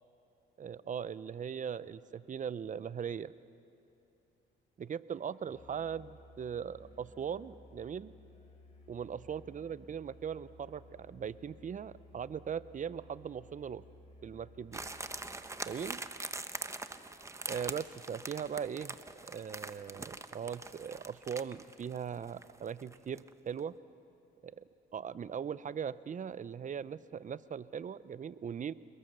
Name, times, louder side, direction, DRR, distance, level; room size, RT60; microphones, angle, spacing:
voice 1, 0.6-3.3 4.8-8.1 8.9-13.8 14.2-14.8 15.6-16.0 17.5-19.0 19.2-23.7 24.4-24.7 24.9-28.7, right 7 dB, 40° right, 16 dB, 0.7 m, -39 dB
Musical instrument, 5.4-15.4, left 1 dB, 35° left, 7.7 m, -57 dB
sound 1, 14.7-23.3 23.6-23.7, right 2 dB, 15° right, 1.0 m, -43 dB
27.5 x 22.0 x 6.8 m, 2.8 s
cardioid pair, 90°, 20 cm